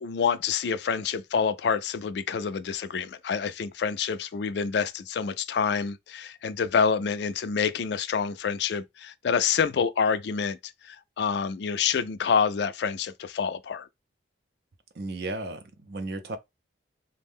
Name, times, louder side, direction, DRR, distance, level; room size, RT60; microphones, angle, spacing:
voice 1, 0.0-10.6 10.8-13.9, left 6 dB, 65° left, 0.3 m, -27 dB
voice 2, 14.9-16.4, right 2 dB, 60° right, 0.5 m, -34 dB
2.6 x 2.1 x 3.5 m
head